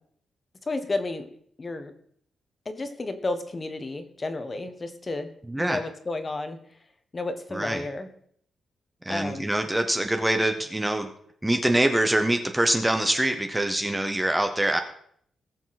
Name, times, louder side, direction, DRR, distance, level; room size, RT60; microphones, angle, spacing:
voice 1, 0.7-1.3 1.6-1.9 2.6-5.3 5.6-6.6 7.1-8.1 9.1-9.5, left 2 dB, 25° left, 9 dB, 1.2 m, -32 dB
voice 2, 5.5-5.8 7.5-7.8 9.0-11.1 11.4-14.8, right 1 dB, 10° right, 6 dB, 0.8 m, -24 dB
19.5 x 7.1 x 4.1 m, 0.63 s
wide cardioid pair, 165°, 0 cm